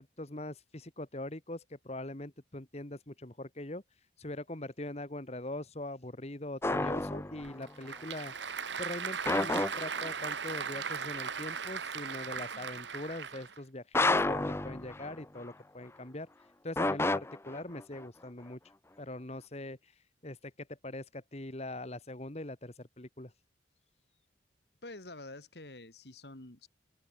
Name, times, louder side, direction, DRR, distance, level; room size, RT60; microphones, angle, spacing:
voice 1, 0.0-3.8 4.2-8.3 8.8-16.3 16.6-18.6 19.0-23.3, left 1 dB, 35° left, 1.7 m, -42 dB
sound 1, 6.6-7.7 9.3-10.3 13.9-15.5 16.8-18.0, left 2 dB, 15° left, 0.5 m, -31 dB
Applause / Crowd, 7.4-13.6, right 6 dB, 85° right, 2.1 m, -38 dB
voice 2, 24.8-26.7, left 2 dB, 65° left, 2.6 m, -47 dB
open air
head